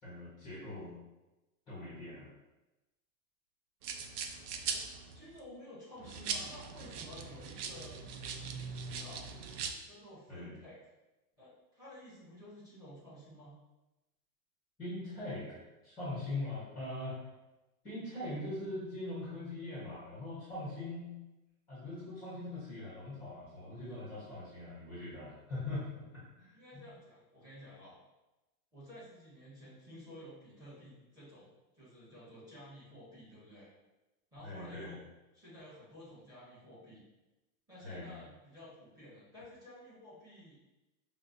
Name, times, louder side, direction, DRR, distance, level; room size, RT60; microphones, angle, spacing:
voice 1, 0.0-0.9 1.7-2.3 10.3-10.6 14.8-17.2 17.8-21.1 21.7-25.9 26.4-26.8 34.4-35.0 37.8-38.2, left 2 dB, 10° left, -10 dB, 0.6 m, -41 dB
sound 1, 3.8-5.4 6.0-9.7, right 5 dB, 80° right, 0.5 m, -40 dB
voice 2, 5.1-8.0 8.4-9.3 9.8-10.8 11.4-13.5 26.5-28.0 28.7-33.7 34.3-35.0 35.3-37.0 37.7-40.6, equal, 10° right, -10 dB, 0.9 m, -52 dB
5.1 x 2.1 x 2.4 m, 1.0 s
supercardioid pair, 175°, 44 cm